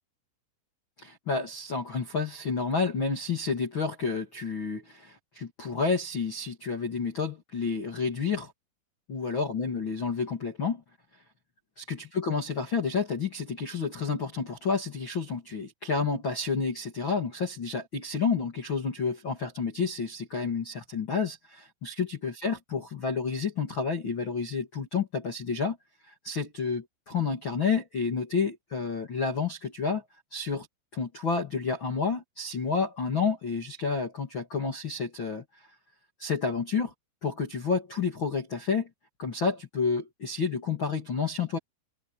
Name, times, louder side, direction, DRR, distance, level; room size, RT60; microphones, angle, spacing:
voice 1, 1.0-8.5 9.1-10.8 11.8-25.8 26.1-30.0 30.3-30.7 30.9-35.7 36.2-36.9 37.2-38.9 39.2-41.6, left 5 dB, 40° left, 2.0 m, -30 dB
omnidirectional pair, 5.8 m